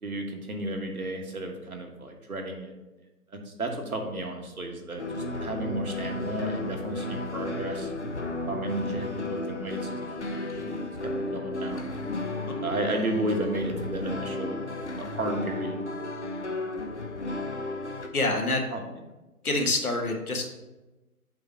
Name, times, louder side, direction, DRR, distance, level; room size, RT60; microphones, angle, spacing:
voice 1, 0.0-2.7 3.3-7.9 8.5-11.8 12.4-14.6 15.0-15.8 18.7-18.8, right 1 dB, 70° right, 3 dB, 1.4 m, -33 dB
sound 1, 5.0-18.1, left 2 dB, 50° left, 0.7 m, -33 dB
voice 2, 18.1-18.6 19.4-20.5, left 2 dB, 70° left, 3 dB, 1.5 m, -26 dB
7.9 x 3.2 x 5.7 m, 1.1 s
figure-of-eight pair, 175°, 46 cm